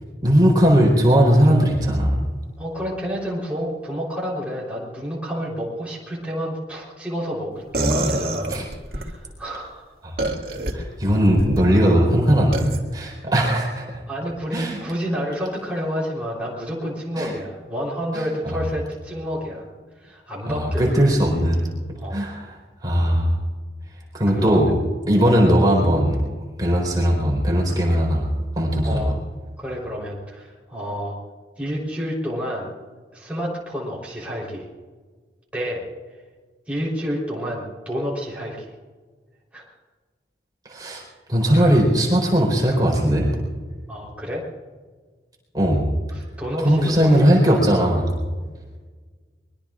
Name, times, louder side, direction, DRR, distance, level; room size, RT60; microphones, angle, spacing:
voice 1, 0.2-2.2 8.5-8.7 10.7-13.9 14.5-14.8 17.2-17.3 18.1-18.6 20.5-21.6 22.1-22.6 22.8-23.4 24.1-24.7 25.1-26.2 26.6-29.0 40.7-41.0 41.3-43.3 45.5-45.9 46.6-48.2, equal, 25° right, -3 dB, 4.3 m, -18 dB
voice 2, 2.6-8.6 8.9-9.8 13.3-13.5 14.1-19.7 20.0-21.1 21.9-22.2 24.3-24.7 25.2-25.4 28.8-29.2 29.6-31.2 31.6-32.7 33.1-34.7 35.5-35.9 36.7-38.7 39.5-39.7 43.9-44.4 46.1-47.6, equal, 10° right, -5 dB, 3.9 m, -29 dB
sound 1, 7.7-9.1 10.2-10.7 11.3-11.7 12.5-12.8, right 2 dB, 55° right, 2.5 m, -25 dB
24.0 x 22.0 x 2.5 m, 1.4 s
head